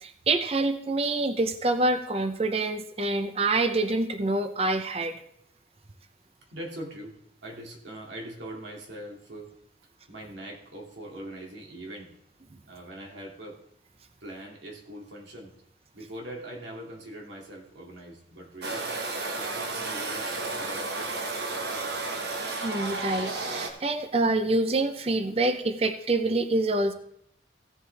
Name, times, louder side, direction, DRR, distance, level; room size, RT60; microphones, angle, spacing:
voice 1, 0.0-5.2 22.6-26.9, right 2 dB, 35° right, 8 dB, 0.6 m, -26 dB
voice 2, 6.5-7.1 7.4-9.5 10.1-12.1 12.7-13.6 14.2-15.5 15.9-18.9 19.4-21.2, right 1 dB, 85° right, -1 dB, 2.4 m, -42 dB
sound 1, 18.6-23.7, right 3 dB, 65° right, 1.3 m, -32 dB
15.5 x 7.3 x 3.4 m, 0.72 s
head